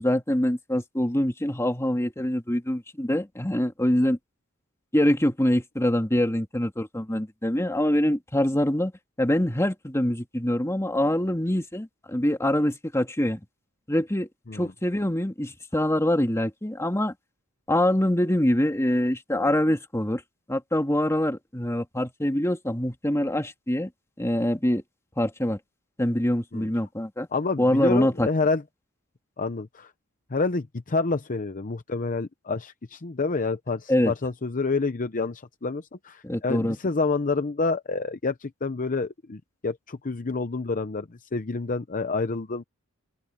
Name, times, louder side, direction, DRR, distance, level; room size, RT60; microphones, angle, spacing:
voice 1, 0.0-4.2 4.9-8.9 9.2-13.4 13.9-17.1 17.7-20.2 20.5-23.9 24.2-24.8 25.2-25.6 26.0-27.3 27.6-28.3 33.9-34.1 36.2-36.8, left 1 dB, 15° left, 2.0 m, -24 dB
voice 2, 27.3-28.6 29.4-29.9 30.3-42.6, left 3 dB, 40° left, 0.7 m, -28 dB
open air
head